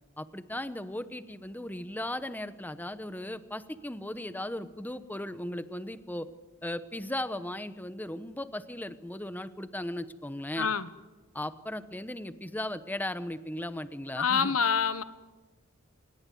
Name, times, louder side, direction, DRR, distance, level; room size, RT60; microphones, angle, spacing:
voice 1, 0.2-6.3 6.6-10.7 11.3-14.6, left 1 dB, 10° left, 12 dB, 1.0 m, -37 dB
voice 2, 10.6-10.9 14.2-15.0, left 6 dB, 90° left, 13 dB, 1.3 m, -26 dB
26.0 x 20.5 x 9.4 m, 1.2 s
head